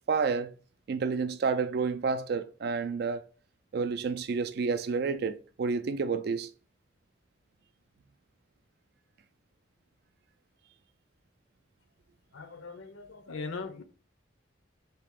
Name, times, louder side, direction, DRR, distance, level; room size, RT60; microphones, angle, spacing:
voice 1, 0.1-0.5 0.9-3.3 3.7-6.5, right 5 dB, 50° right, 0.3 m, -30 dB
voice 2, 12.3-13.8, left 4 dB, 80° left, 0.7 m, -40 dB
4.0 x 2.9 x 3.6 m
head